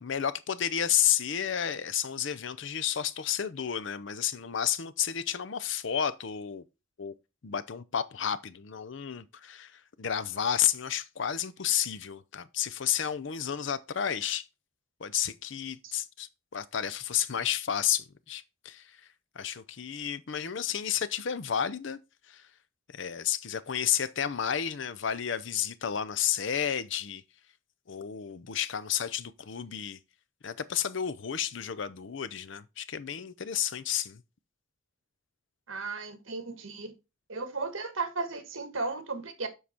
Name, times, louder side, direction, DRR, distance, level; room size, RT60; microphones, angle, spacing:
voice 1, 0.0-6.6 7.0-7.1 7.4-14.5 15.0-19.0 19.3-22.0 22.3-22.5 22.9-27.2 27.9-30.0 30.4-34.2, left 9 dB, 60° left, 0.6 m, -31 dB
voice 2, 35.7-36.9 37.3-39.5, right 3 dB, 75° right, 1.5 m, -35 dB
7.3 x 4.9 x 4.4 m
head